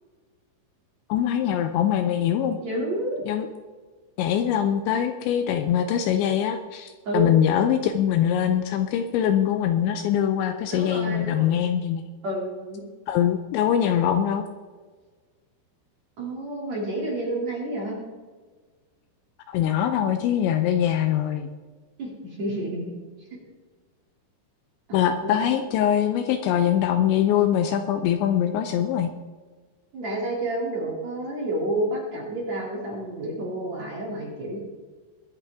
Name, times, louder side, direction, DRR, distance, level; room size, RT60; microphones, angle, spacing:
voice 1, 1.1-2.6 3.3-3.5 4.2-12.0 13.1-14.4 19.5-21.5 24.9-29.1, left 10 dB, 80° left, 7 dB, 2.7 m, -23 dB
voice 2, 2.6-3.2 7.0-7.4 10.7-11.6 12.2-12.8 16.2-18.0 22.0-22.9 24.9-25.4 29.9-34.6, right 1 dB, 40° right, -3 dB, 3.1 m, -30 dB
22.0 x 8.9 x 3.5 m, 1.4 s
omnidirectional pair, 5.6 m